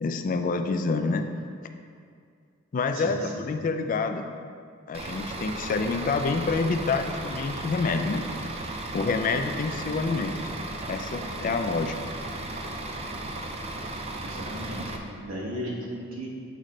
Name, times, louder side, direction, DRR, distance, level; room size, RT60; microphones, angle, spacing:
voice 1, 0.0-1.3 2.7-4.3 4.9-8.2 8.9-10.4 10.9-12.0, left 4 dB, 40° left, 7 dB, 0.3 m, -27 dB
voice 2, 2.9-3.3 14.2-16.3, equal, 80° right, -4 dB, 1.0 m, -35 dB
Bus / Idling, 4.9-15.0, right 2 dB, 30° right, 0.4 m, -35 dB
8.0 x 3.2 x 3.8 m, 2.2 s
head